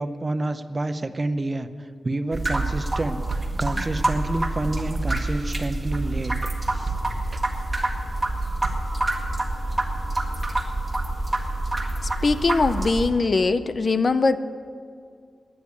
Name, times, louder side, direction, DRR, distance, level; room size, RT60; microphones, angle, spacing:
voice 1, 0.0-1.7 2.0-6.3 6.7-7.4, right 2 dB, 35° right, 10 dB, 0.6 m, -29 dB
sound 1, 2.3-13.1, right 2 dB, 20° right, 1.8 m, -27 dB
sound 2, 2.4-2.9 3.3-7.8 8.2-9.2, right 2 dB, 70° right, 1.1 m, -38 dB
voice 2, 12.0-14.4, left 3 dB, 55° left, 12 dB, 0.5 m, -21 dB
10.0 x 9.6 x 9.6 m, 2.2 s
cardioid pair, 75°, 0 cm